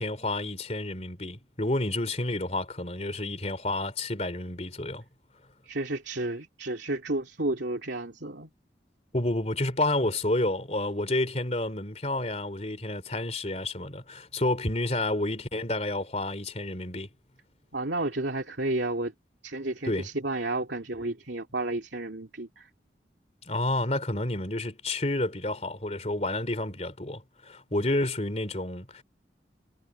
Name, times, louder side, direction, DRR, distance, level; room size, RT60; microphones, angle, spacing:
voice 1, 0.0-5.0 9.1-17.1 19.9-20.1 23.4-29.0, left 2 dB, 35° left, 3.3 m, -30 dB
voice 2, 5.6-8.5 17.7-19.1 19.4-22.7, right 2 dB, 80° right, 2.8 m, -31 dB
head